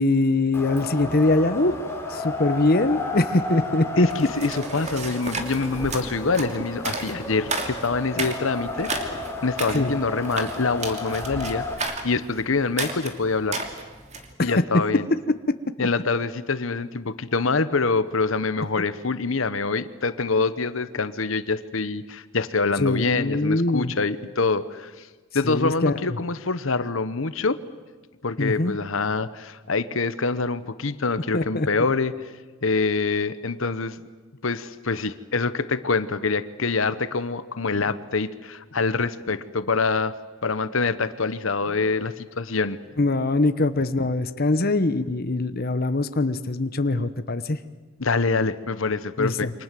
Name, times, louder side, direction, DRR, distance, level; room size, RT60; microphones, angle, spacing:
voice 1, 0.0-1.8 2.1-4.1 9.7-9.9 14.4-14.6 22.8-23.9 25.4-26.0 28.4-28.8 31.3-31.7 43.0-47.6 49.2-49.5, left 2 dB, 45° left, 10 dB, 1.0 m, -23 dB
Wind, 0.5-11.7, left 2 dB, 10° left, 3.6 m, -33 dB
voice 2, 4.0-11.6 12.0-13.6 14.4-15.1 15.8-25.1 25.3-27.6 28.2-32.3 32.6-34.0 34.4-40.1 40.4-42.8 48.0-49.5, left 4 dB, 70° left, 13 dB, 1.0 m, -25 dB
sound 1, 4.1-14.3, right 3 dB, 35° right, 2.8 m, -33 dB
28.5 x 25.0 x 7.6 m, 1.3 s
head